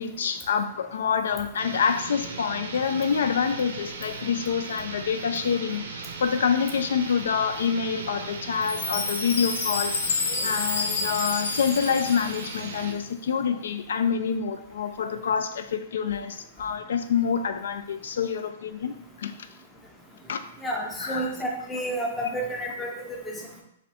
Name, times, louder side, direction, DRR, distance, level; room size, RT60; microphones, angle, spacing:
voice 1, 0.0-19.3 20.3-20.4 21.0-21.3, left 6 dB, 85° left, 9 dB, 0.3 m, -27 dB
sound 1, 1.6-13.0, right 4 dB, 75° right, 0.6 m, -38 dB
Chime, 8.6-12.8, left 4 dB, 65° left, 0.9 m, -29 dB
voice 2, 20.6-23.6, right 1 dB, 5° left, -1 dB, 0.5 m, -31 dB
3.1 x 2.6 x 4.1 m, 0.78 s
hypercardioid pair, 170°, 0 cm